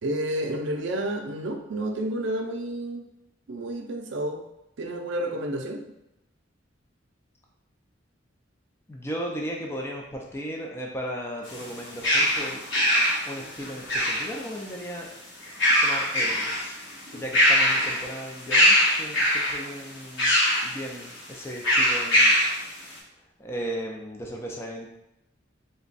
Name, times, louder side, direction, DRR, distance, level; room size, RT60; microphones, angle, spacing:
voice 1, 0.0-3.1 3.5-4.5 4.8-5.8, right 1 dB, 65° right, 3 dB, 0.5 m, -30 dB
voice 2, 8.9-12.6 13.2-15.1 15.8-16.8 17.1-22.4 23.4-24.9, equal, 15° left, 0 dB, 0.4 m, -36 dB
sound 1, 11.5-14.5 15.4-16.7 17.1-18.1 18.5-19.6 20.2-20.7 21.6-22.6, equal, 75° left, 1.3 m, -22 dB
3.4 x 2.2 x 3.9 m, 0.85 s
head